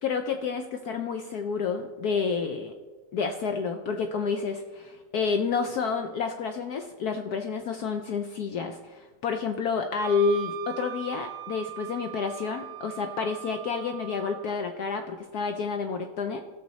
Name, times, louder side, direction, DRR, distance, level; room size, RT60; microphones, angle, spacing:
voice 1, 0.0-2.7 3.1-16.4, left 5 dB, 80° left, 6 dB, 0.8 m, -29 dB
Wind instrument woodwind instrument, 10.0-14.5, right 15 dB, 75° right, 1.4 m, -40 dB
16.0 x 6.8 x 4.1 m, 1.3 s
omnidirectional pair, 2.4 m